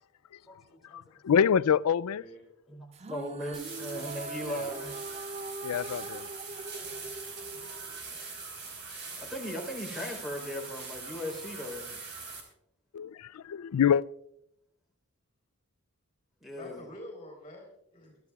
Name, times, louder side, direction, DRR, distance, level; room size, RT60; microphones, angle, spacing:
voice 1, 0.5-1.0 2.7-5.5 6.4-6.5 7.5-7.6 9.2-12.0 16.4-16.8, left 1 dB, ahead, 3.7 m, -38 dB
voice 2, 1.2-2.2 5.6-6.2 12.9-14.0, left 8 dB, 85° left, 0.4 m, -25 dB
voice 3, 2.1-2.5 16.5-18.2, left 1 dB, 25° left, 3.6 m, -47 dB
sound 1, 2.9-8.4, right 3 dB, 30° right, 0.4 m, -42 dB
sound 2, 3.5-12.4, right 4 dB, 55° right, 4.0 m, -42 dB
22.5 x 13.5 x 2.4 m
head